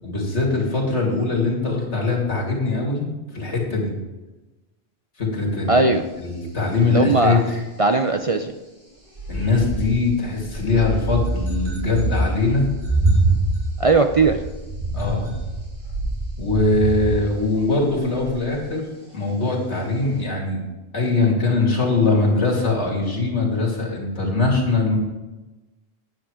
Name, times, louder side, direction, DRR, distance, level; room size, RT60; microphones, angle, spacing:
voice 1, 0.0-3.1 3.3-3.9 5.2-5.9 6.2-7.6 9.3-12.7 14.9-15.3 16.4-18.8 19.1-20.6 20.9-25.0, left 3 dB, 85° left, -1 dB, 3.0 m, -21 dB
voice 2, 5.7-6.0 6.9-7.4 7.8-8.5 13.8-14.4, right 3 dB, 40° right, 6 dB, 0.5 m, -18 dB
sound 1, 9.1-18.5 20.2-20.3, right 2 dB, 65° right, 4.1 m, -25 dB
10.5 x 8.9 x 5.0 m, 1.1 s
omnidirectional pair, 1.1 m